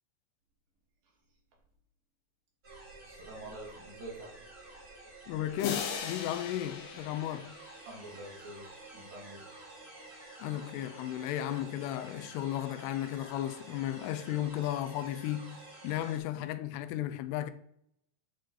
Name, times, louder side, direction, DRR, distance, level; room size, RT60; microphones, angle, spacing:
sound 1, 2.6-16.2, right 2 dB, 80° right, 0.5 m, -51 dB
voice 1, 3.0-4.3 7.9-8.6 8.9-9.4, right 2 dB, 60° right, 4.0 m, -46 dB
voice 2, 5.3-7.6 10.4-17.5, left 12 dB, 90° left, 2.6 m, -34 dB
sound 2, 5.6-8.3, left 6 dB, 70° left, 2.7 m, -39 dB
10.5 x 4.7 x 4.5 m
omnidirectional pair, 4.6 m